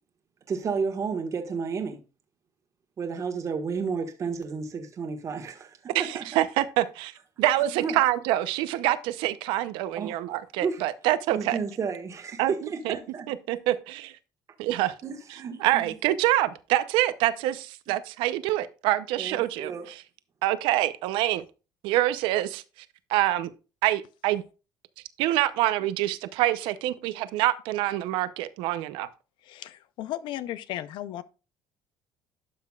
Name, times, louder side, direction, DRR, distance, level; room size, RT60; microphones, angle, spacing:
voice 1, 0.5-2.0 3.0-6.2 7.8-8.0 9.9-10.2 10.6-10.8 11.3-13.3 15.0-15.9 17.9-18.0 19.2-19.9, right 5 dB, 40° right, 1.4 m, -32 dB
voice 2, 5.9-7.1 7.4-11.6 12.4-12.5 12.8-13.0 13.3-13.7 14.6-14.9 15.6-19.7 20.4-21.4 21.8-22.6 23.1-23.5 23.8-24.4 25.2-29.1, right 15 dB, 80° right, 0.6 m, -25 dB
voice 3, 29.4-31.2, left 13 dB, 70° left, 0.6 m, -35 dB
12.0 x 5.8 x 2.3 m
cardioid pair, 105°, 8 cm